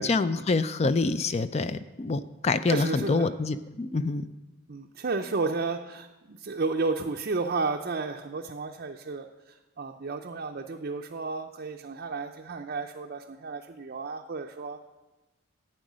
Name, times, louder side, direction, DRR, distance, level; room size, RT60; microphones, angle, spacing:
voice 1, 0.0-4.2, left 3 dB, 30° left, 13 dB, 0.4 m, -26 dB
voice 2, 2.7-3.3 4.7-14.8, right 3 dB, 50° right, 2 dB, 0.5 m, -32 dB
10.5 x 8.7 x 6.2 m, 1.2 s
head